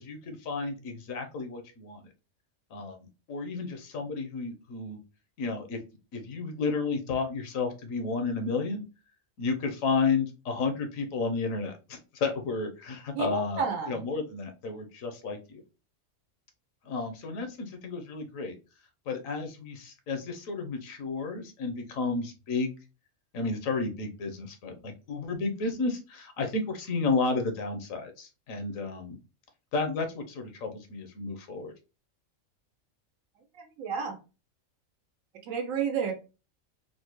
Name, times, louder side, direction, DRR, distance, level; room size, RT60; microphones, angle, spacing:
voice 1, 0.1-2.0 2.7-5.0 5.4-5.8 6.1-8.8 9.4-15.6 16.8-18.6 19.1-22.7 23.3-29.2 29.7-31.7, left 4 dB, 80° left, 6 dB, 1.2 m, -32 dB
voice 2, 13.1-14.0 33.5-34.2 35.5-36.1, right 6 dB, 85° right, 5 dB, 1.1 m, -31 dB
3.8 x 2.1 x 3.0 m, 0.30 s
omnidirectional pair, 1.4 m